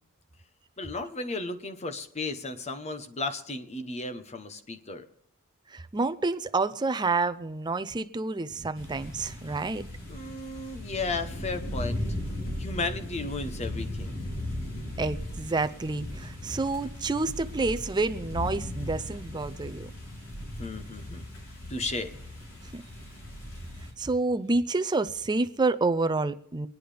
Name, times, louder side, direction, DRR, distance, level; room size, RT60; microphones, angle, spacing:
voice 1, 0.8-5.0 10.1-12.0 12.6-14.3 20.6-21.2 21.7-22.2, left 3 dB, 30° left, 9 dB, 0.9 m, -34 dB
voice 2, 5.7-9.8 15.0-19.9 22.7-22.8 24.0-26.7, right 3 dB, 20° right, 10 dB, 0.5 m, -28 dB
sound 1, 8.8-23.9, left 1 dB, 70° left, 3.7 m, -37 dB
25.0 x 9.4 x 3.4 m, 0.68 s
head